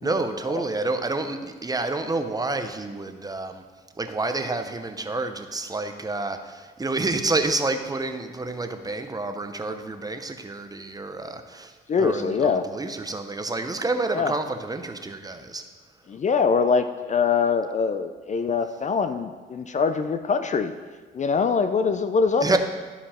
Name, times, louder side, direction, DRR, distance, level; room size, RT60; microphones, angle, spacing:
voice 1, 0.0-3.6 4.0-15.6 22.4-22.6, right 2 dB, 20° right, 7 dB, 0.8 m, -29 dB
voice 2, 11.9-12.6 14.1-14.3 16.1-20.7 21.1-22.6, left 5 dB, 35° left, 9 dB, 0.5 m, -23 dB
13.0 x 5.2 x 4.3 m, 1.4 s
cardioid pair, 90°, 20 cm